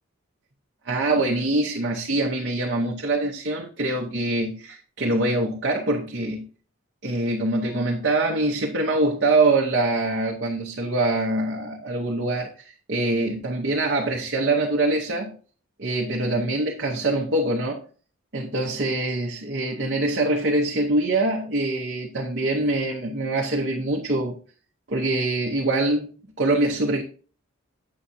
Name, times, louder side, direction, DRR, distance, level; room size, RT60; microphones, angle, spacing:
voice 1, 0.9-6.4 7.0-15.3 15.8-17.8 18.3-24.4 24.9-27.0, right 2 dB, 50° right, 0.8 m, -24 dB
8.5 x 6.9 x 2.6 m
head